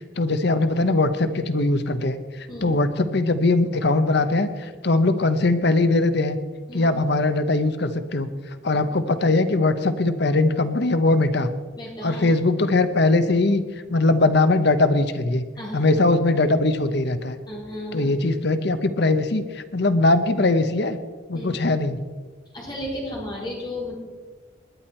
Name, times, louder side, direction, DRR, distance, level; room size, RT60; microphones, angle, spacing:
voice 1, 0.2-6.4 6.7-8.3 8.6-11.5 12.0-13.6 13.9-15.4 15.7-17.4 17.9-21.0 21.3-22.0, left 2 dB, 55° left, 11 dB, 0.8 m, -21 dB
voice 2, 11.8-12.3 15.6-15.9 17.5-18.1 21.3-21.5 22.5-24.0, left 1 dB, 20° left, -4 dB, 4.2 m, -33 dB
20.0 x 10.5 x 4.4 m, 1.4 s
head